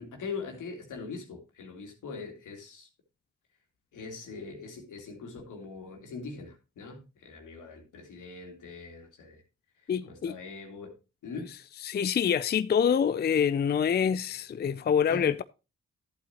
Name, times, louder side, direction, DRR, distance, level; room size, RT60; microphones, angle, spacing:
voice 1, 0.0-2.9 3.9-9.4 9.8-11.0 11.2-11.5 15.1-15.3, left 4 dB, 75° left, 2.5 m, -42 dB
voice 2, 9.9-10.3 11.8-15.4, left 7 dB, 35° left, 0.4 m, -26 dB
11.5 x 8.3 x 2.9 m
supercardioid pair, 45°, 31 cm